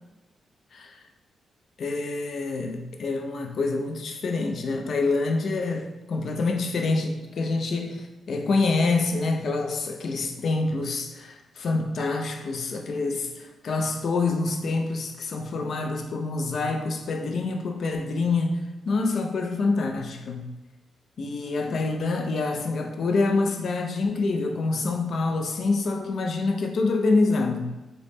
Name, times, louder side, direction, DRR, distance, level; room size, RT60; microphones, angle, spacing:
voice 1, 0.7-1.0 1.8-18.6 18.9-20.4 21.2-27.7, left 3 dB, 60° left, 4 dB, 0.4 m, -26 dB
3.7 x 2.1 x 3.4 m, 1.1 s
cardioid pair, 105°, 0 cm